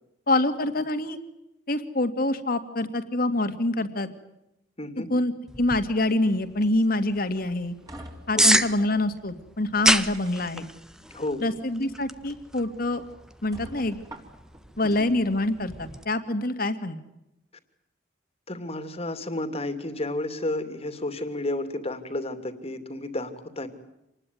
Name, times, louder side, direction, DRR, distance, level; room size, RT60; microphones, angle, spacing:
voice 1, 0.3-1.2 1.7-4.1 5.1-7.7 8.3-10.7 11.4-13.0 13.4-14.0 14.8-17.0, left 2 dB, 55° left, 9 dB, 2.5 m, -26 dB
voice 2, 4.8-5.1 8.3-8.6 11.1-11.4 14.8-15.1 18.5-23.7, left 2 dB, 35° left, 9 dB, 2.8 m, -32 dB
sound 1, 5.5-16.0, right 1 dB, 5° right, 1.1 m, -30 dB
sound 2, 7.3-9.0 9.6-10.7 11.7-11.9 12.3-12.4 12.9-13.0 13.5-14.6, right 1 dB, 20° right, 4.1 m, -45 dB
27.5 x 20.5 x 9.6 m, 0.87 s
head